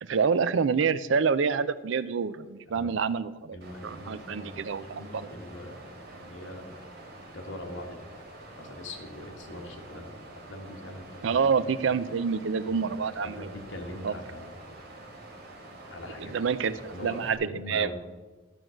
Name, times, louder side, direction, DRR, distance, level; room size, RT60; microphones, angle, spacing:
voice 1, 0.0-3.6 3.8-5.3 11.2-13.5 14.0-14.1 16.2-17.9, right 5 dB, 75° right, 16 dB, 0.4 m, -27 dB
voice 2, 3.5-6.8 7.3-8.0 8.6-10.2 10.5-11.4 12.7-12.9 13.4-14.6 15.9-16.3 16.9-18.0, left 1 dB, 75° left, 3 dB, 1.5 m, -42 dB
Water, 3.6-17.4, right 2 dB, 50° right, 1.7 m, -47 dB
11.0 x 4.7 x 6.4 m, 1.2 s
head